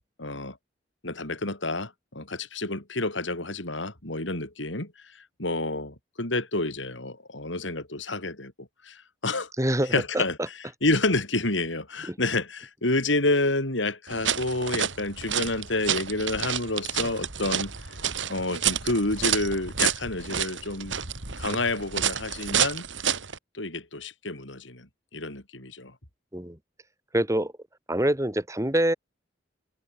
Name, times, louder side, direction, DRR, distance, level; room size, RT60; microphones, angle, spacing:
voice 1, 0.2-0.6 1.0-4.9 5.4-9.5 9.9-17.7 18.3-21.0 21.4-22.8 23.5-25.9, left 2 dB, 85° left, 6.0 m, -29 dB
voice 2, 9.6-10.2 12.1-12.2 26.3-26.6 27.1-27.5 27.9-28.9, right 1 dB, 15° right, 2.6 m, -25 dB
sound 1, 14.1-23.4, right 8 dB, 85° right, 3.1 m, -29 dB
head